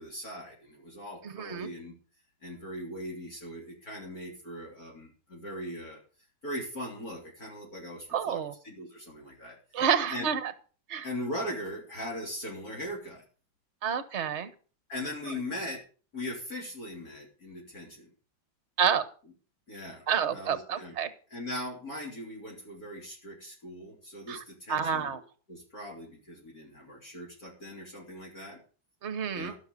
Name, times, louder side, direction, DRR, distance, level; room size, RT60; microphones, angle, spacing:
voice 1, 0.0-1.9 2.4-6.0 6.4-9.8 10.1-10.3 11.0-13.2 14.9-15.8 16.1-18.1 19.7-20.1 20.3-21.0 21.3-25.2 25.5-28.6 29.3-29.6, left 1 dB, 50° left, -2 dB, 3.7 m, -40 dB
voice 2, 1.2-1.7 8.1-8.5 9.7-10.5 10.9-11.1 13.8-14.5 18.8-19.0 20.1-21.1 24.3-24.4 24.7-25.2 29.0-29.5, right 7 dB, 40° right, 13 dB, 1.3 m, -29 dB
16.0 x 6.9 x 6.7 m, 0.39 s
omnidirectional pair, 2.1 m